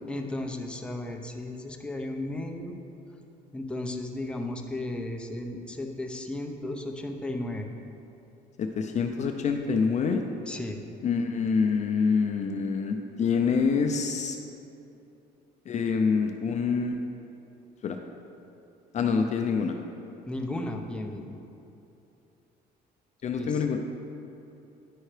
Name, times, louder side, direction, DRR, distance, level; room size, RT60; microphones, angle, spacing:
voice 1, 0.1-2.7 3.5-7.7 10.5-10.8 20.3-21.4 23.3-23.6, left 1 dB, 5° left, 2 dB, 0.6 m, -34 dB
voice 2, 8.6-10.2 11.0-14.4 15.7-17.0 17.8-18.0 18.9-19.8 23.2-23.8, left 5 dB, 45° left, 4 dB, 0.5 m, -26 dB
10.0 x 5.5 x 3.2 m, 2.8 s
cardioid pair, 110°, 17 cm